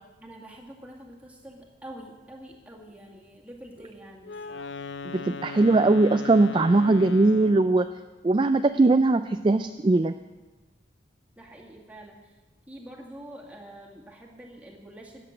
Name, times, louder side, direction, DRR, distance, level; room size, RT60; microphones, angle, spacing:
voice 1, 0.2-4.7 11.4-12.3 12.7-15.2, right 1 dB, 10° right, -2 dB, 2.0 m, -46 dB
Wind instrument woodwind instrument, 4.2-7.9, left 4 dB, 80° left, 0.6 m, -38 dB
voice 2, 5.1-7.9 8.2-10.2, right 2 dB, 25° right, 9 dB, 0.3 m, -20 dB
13.5 x 8.0 x 9.1 m, 1.2 s
head